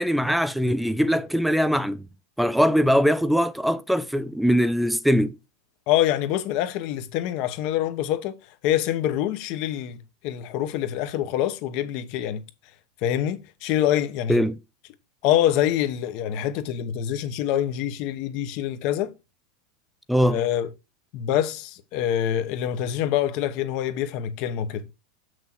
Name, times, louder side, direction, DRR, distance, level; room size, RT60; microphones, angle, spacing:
voice 1, 0.0-2.0 2.4-5.3 14.3-14.6 20.1-20.4, equal, ahead, 0.4 m, -21 dB
voice 2, 5.9-8.3 8.6-12.4 13.0-14.4 15.2-19.1 20.3-20.7 21.1-24.9, left 11 dB, 40° left, 1.1 m, -25 dB
7.5 x 6.2 x 4.5 m
supercardioid pair, 170°, 2 cm